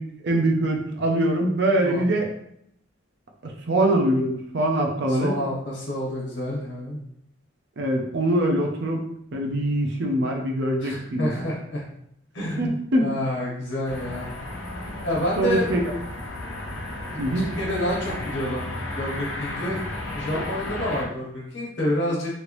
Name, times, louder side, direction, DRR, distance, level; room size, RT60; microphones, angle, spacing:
voice 1, 0.2-2.3 3.4-5.3 7.8-9.0 9.3-11.5 12.6-13.1 15.4-15.8 17.2-17.5, right 1 dB, 60° right, 2 dB, 0.5 m, -23 dB
voice 2, 5.1-7.0 10.8-11.8 12.3-14.3 15.0-15.6 17.1-17.2 17.6-18.7 19.0-19.8 20.1-22.3, equal, 65° left, -4 dB, 1.2 m, -28 dB
sound 1, 13.9-21.1, left 1 dB, 85° left, 0.7 m, -33 dB
3.1 x 3.1 x 2.6 m, 0.74 s
head